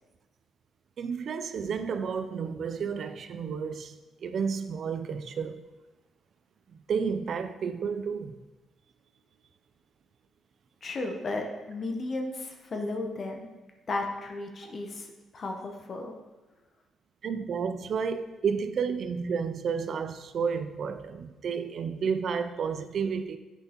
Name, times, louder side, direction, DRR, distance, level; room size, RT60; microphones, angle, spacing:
voice 1, 1.0-5.6 6.7-8.3 14.6-14.7 17.2-23.4, right 6 dB, 60° right, 0.4 m, -31 dB
voice 2, 10.8-13.5 13.9-15.1 15.3-16.1, left 2 dB, 45° left, 0.8 m, -34 dB
8.0 x 5.3 x 2.9 m
cardioid pair, 90°, 0 cm